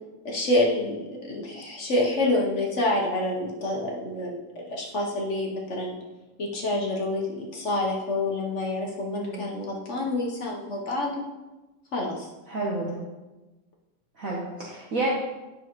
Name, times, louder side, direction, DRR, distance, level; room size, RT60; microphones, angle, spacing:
voice 1, 0.2-6.0 6.4-11.1 11.9-12.3, left 1 dB, 45° left, -2 dB, 1.1 m, -27 dB
voice 2, 12.5-12.9 14.2-15.1, right 2 dB, 50° right, -4 dB, 1.3 m, -30 dB
9.6 x 6.3 x 3.0 m, 1.1 s
omnidirectional pair, 2.0 m